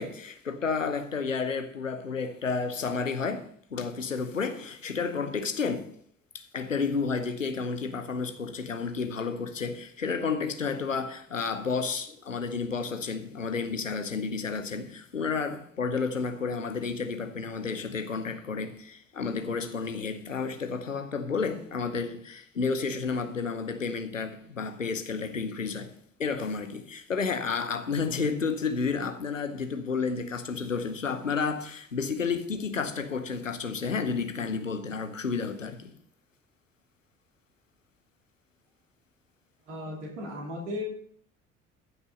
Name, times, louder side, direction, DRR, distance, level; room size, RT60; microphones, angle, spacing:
voice 1, 0.0-5.9 6.3-35.9, left 5 dB, 85° left, 0.9 m, -31 dB
voice 2, 39.7-40.9, left 1 dB, 70° right, 3.1 m, -36 dB
14.0 x 6.1 x 5.4 m
figure-of-eight pair, 50°, 37 cm